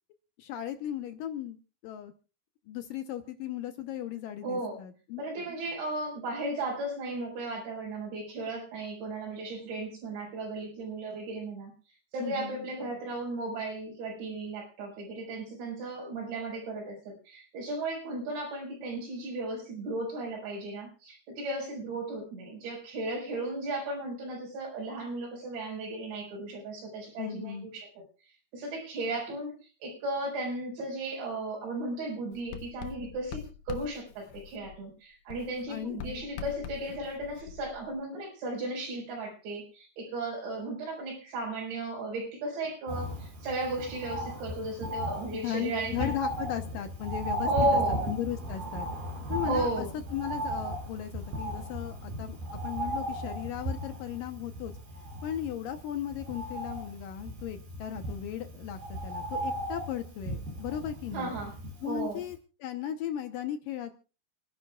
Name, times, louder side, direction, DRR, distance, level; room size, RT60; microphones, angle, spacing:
voice 1, 0.4-1.6 1.8-2.1 2.7-5.2 12.2-12.7 27.2-27.7 35.7-36.0 45.3-48.9 49.3-49.9 50.1-52.4 52.6-54.7 55.2-61.3 61.8-63.9, left 11 dB, 75° left, 8 dB, 2.1 m, -36 dB
voice 2, 4.4-4.8 5.2-11.7 12.1-27.9 28.5-29.5 29.8-46.1 47.4-48.0 49.4-49.9 61.1-61.5 61.8-62.2, right 2 dB, 90° right, -2 dB, 7.1 m, -35 dB
Writing, 32.3-35.0 35.3-38.0, left 9 dB, 90° left, 3.3 m, -44 dB
Bird, 42.9-62.0 62.3-62.4, right 1 dB, 60° right, 6.2 m, -35 dB
28.0 x 10.5 x 2.3 m, 0.33 s
omnidirectional pair, 4.9 m